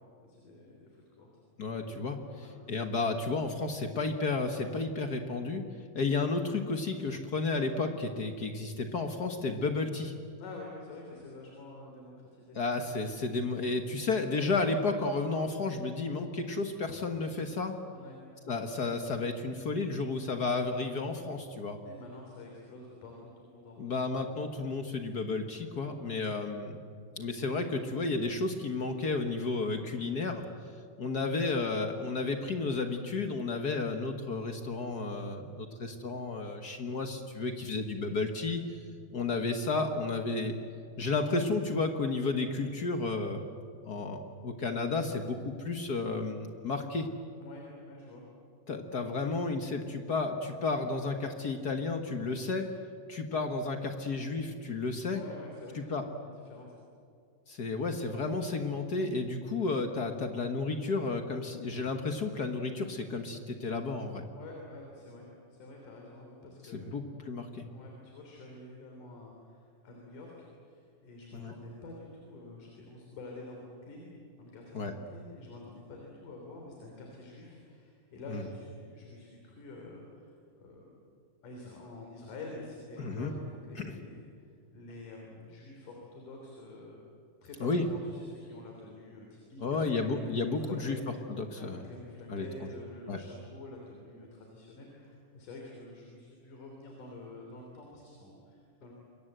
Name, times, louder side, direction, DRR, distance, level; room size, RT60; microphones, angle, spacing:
voice 1, 0.2-1.3 2.3-2.5 10.4-12.6 17.9-18.2 21.8-24.0 25.9-26.2 31.2-31.4 42.3-42.5 47.4-48.2 55.1-55.8 56.4-56.8 64.3-67.0 67.7-74.1 74.4-80.9 81.4-87.0 87.4-91.0 91.5-98.9, left 2 dB, 80° left, 0 dB, 4.8 m, -48 dB
voice 2, 1.6-5.7 5.9-10.1 12.5-17.8 18.5-21.8 23.8-26.8 27.2-30.4 31.0-38.8 39.1-40.6 41.0-43.4 43.8-47.1 48.7-52.7 53.1-55.2 55.7-56.0 57.5-64.2 66.7-67.7 71.3-71.5 74.7-74.9 78.3-78.4 83.0-83.3 83.8-83.9 87.6-87.8 89.6-91.0 91.4-91.8 92.3-92.4 93.1-93.2, left 3 dB, 50° left, 5 dB, 1.2 m, -32 dB
27.0 x 22.5 x 8.0 m, 2.4 s
omnidirectional pair, 3.6 m